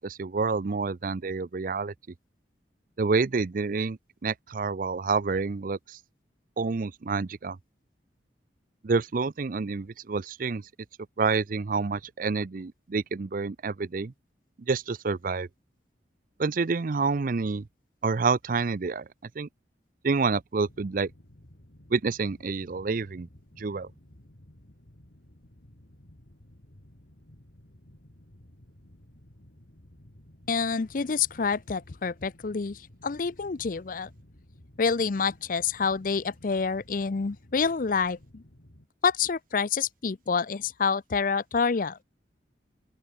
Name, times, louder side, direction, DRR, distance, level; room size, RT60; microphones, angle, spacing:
voice 1, 0.0-1.9 3.0-6.0 6.6-7.6 8.8-10.6 11.2-14.1 14.7-15.5 16.4-17.6 18.0-19.0 19.4-19.5 20.0-21.1 21.9-23.3 23.6-23.9, right 4 dB, 50° right, 0.5 m, -28 dB
sound 1, 20.6-38.9, left 1 dB, 65° left, 2.8 m, -55 dB
voice 2, 30.5-34.1 34.8-38.4 39.0-42.0, left 5 dB, 50° left, 0.5 m, -27 dB
open air
head